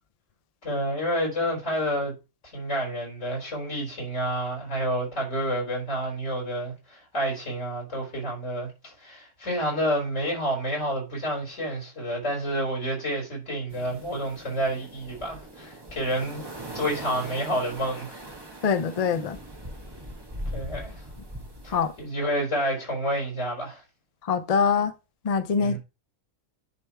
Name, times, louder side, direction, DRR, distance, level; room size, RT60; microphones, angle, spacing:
voice 1, 0.6-2.1 2.5-18.2 20.5-21.1 21.6-23.8 25.5-25.8, equal, 65° left, 4.6 m, -29 dB
sound 1, 13.7-22.0, right 1 dB, 20° right, 1.2 m, -40 dB
voice 2, 18.6-19.4 21.7-21.9 24.2-24.9 25.2-25.8, left 6 dB, 45° left, 0.5 m, -24 dB
10.5 x 3.5 x 4.5 m
omnidirectional pair, 1.4 m